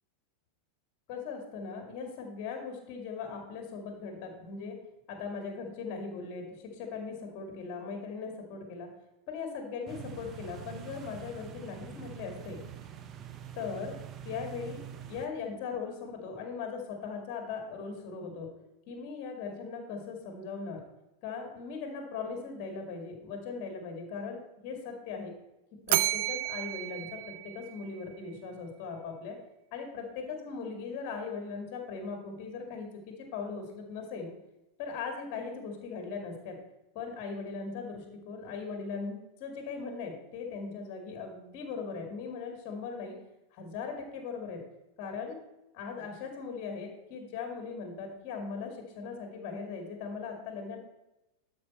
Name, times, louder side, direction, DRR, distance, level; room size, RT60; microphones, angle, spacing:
voice 1, 1.1-4.8 5.1-8.9 9.3-12.6 13.6-13.9 14.2-14.8 15.1-18.5 18.9-20.8 21.2-25.3 25.9-29.4 29.7-34.3 34.8-36.6 36.9-43.2 43.5-44.6 45.0-45.4 45.7-50.8, left 5 dB, 40° left, 3 dB, 2.2 m, -39 dB
sound 1, 9.9-15.3, right 7 dB, 30° right, 0.8 m, -45 dB
Bell, 25.9-28.2, right 15 dB, 50° right, 0.4 m, -32 dB
12.0 x 5.2 x 4.3 m, 0.95 s
figure-of-eight pair, 90°, 0 cm